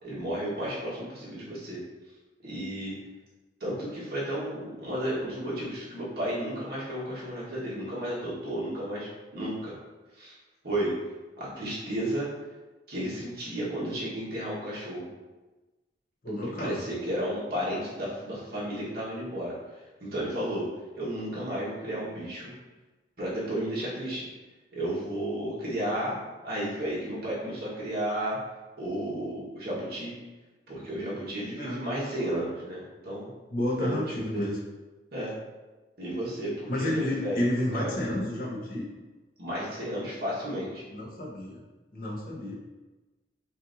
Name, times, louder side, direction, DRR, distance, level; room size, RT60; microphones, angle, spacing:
voice 1, 0.0-1.8 2.4-2.9 3.6-9.7 10.2-10.3 10.6-10.9 11.4-12.3 12.9-15.1 16.6-19.5 20.0-20.7 20.9-22.5 23.2-24.3 24.7-26.2 26.4-28.4 28.8-30.1 30.7-33.3 33.8-34.4 35.1-35.3 36.0-37.5 37.7-37.9 39.4-40.8, right 1 dB, 55° right, -7 dB, 1.3 m, -33 dB
voice 2, 16.2-16.8 31.6-31.8 33.5-34.6 36.7-38.9 40.9-41.6 41.9-42.6, left 1 dB, 50° left, -3 dB, 0.8 m, -30 dB
5.4 x 2.6 x 2.6 m, 1.2 s
head